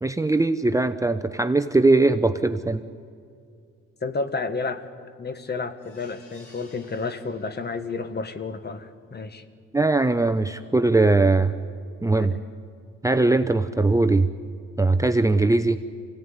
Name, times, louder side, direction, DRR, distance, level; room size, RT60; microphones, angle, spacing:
voice 1, 0.0-2.8 9.7-11.5 12.0-12.3 13.0-14.3 14.8-15.8, right 2 dB, 10° right, 9 dB, 0.7 m, -20 dB
voice 2, 4.0-4.8 5.2-9.4, left 4 dB, 35° left, 10 dB, 1.6 m, -31 dB
sound 1, 5.8-8.0 8.5-8.6 8.9-9.0, left 2 dB, 55° left, 7.2 m, -54 dB
25.0 x 17.0 x 9.8 m, 2.3 s
cardioid pair, 90°, 30 cm